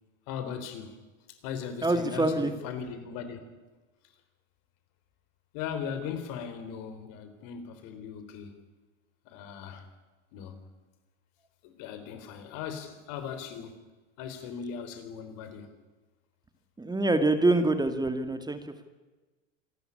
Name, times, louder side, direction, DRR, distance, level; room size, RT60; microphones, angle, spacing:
voice 1, 0.3-1.0 1.4-3.5 5.5-8.5 9.3-9.8 10.3-10.6 11.6-13.8 14.2-15.7, left 7 dB, 60° left, 9 dB, 3.9 m, -38 dB
voice 2, 1.8-2.5 16.8-18.8, right 2 dB, 10° right, 8 dB, 2.1 m, -25 dB
26.5 x 12.0 x 9.9 m, 1.2 s
hypercardioid pair, 105°, 37 cm